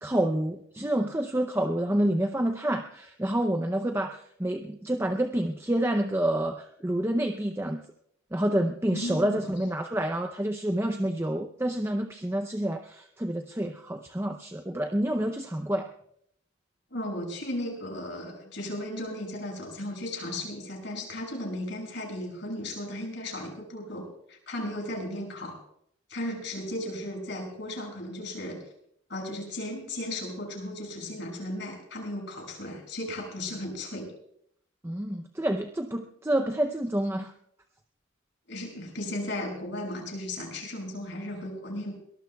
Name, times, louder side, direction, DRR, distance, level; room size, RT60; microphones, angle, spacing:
voice 1, 0.0-7.8 8.3-15.9 34.8-37.3, right 1 dB, 10° right, 5 dB, 0.6 m, -28 dB
voice 2, 8.9-9.5 16.9-25.6 26.1-28.6 29.1-34.1 38.5-41.9, left 1 dB, 60° left, 0 dB, 6.6 m, -35 dB
22.5 x 19.0 x 2.3 m, 0.70 s
head